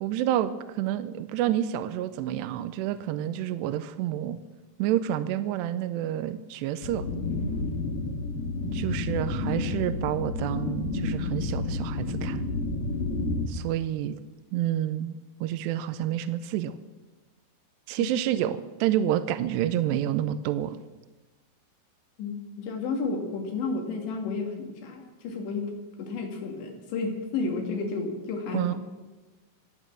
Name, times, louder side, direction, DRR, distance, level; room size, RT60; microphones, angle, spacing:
voice 1, 0.0-4.4 4.8-7.1 8.7-12.4 13.5-14.2 14.5-15.2 15.4-16.8 17.9-20.8 28.5-28.7, right 11 dB, 80° right, 12 dB, 2.7 m, -29 dB
sound 1, 6.8-13.5, left 2 dB, 60° left, 3.2 m, -30 dB
voice 2, 22.2-25.7 26.0-28.8, left 4 dB, 90° left, 2 dB, 4.6 m, -32 dB
26.0 x 8.9 x 6.1 m, 1.2 s
omnidirectional pair, 5.0 m